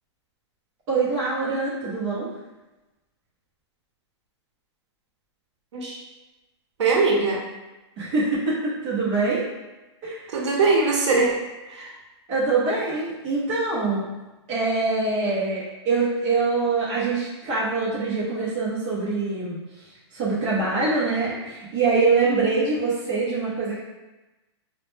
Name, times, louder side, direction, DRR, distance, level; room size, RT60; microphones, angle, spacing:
voice 1, 0.9-2.3 8.0-9.5 10.0-10.3 12.3-14.1 14.5-19.6 20.1-23.8, right 3 dB, 20° right, -9 dB, 0.6 m, -24 dB
voice 2, 6.8-7.4 10.3-11.4 11.7-11.9, right 3 dB, 75° right, -2 dB, 0.6 m, -21 dB
2.0 x 2.0 x 3.1 m, 1.1 s
hypercardioid pair, 180°, 15 cm